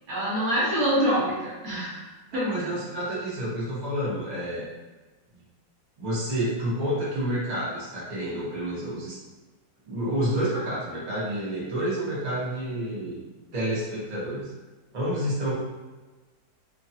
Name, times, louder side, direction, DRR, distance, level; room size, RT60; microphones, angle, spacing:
voice 1, 0.1-2.1 2.3-2.7, equal, 60° right, -7 dB, 1.1 m, -26 dB
voice 2, 2.3-4.7 6.0-9.2 9.8-13.2 13.5-14.5 14.9-15.5, right 1 dB, 40° right, -8 dB, 0.6 m, -29 dB
3.0 x 2.3 x 2.7 m, 1.2 s
omnidirectional pair, 2.0 m